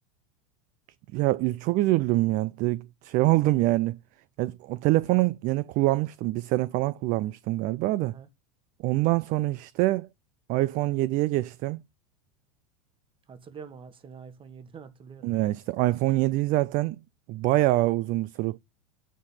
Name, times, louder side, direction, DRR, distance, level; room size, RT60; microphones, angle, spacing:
voice 1, 1.1-3.9 4.4-8.1 8.8-10.1 10.5-11.8 15.2-17.0 17.3-18.6, right 18 dB, 45° right, 0.5 m, -25 dB
voice 2, 13.3-15.3, right 6 dB, 25° right, 1.6 m, -45 dB
9.2 x 4.1 x 5.5 m
hypercardioid pair, 100°, 19 cm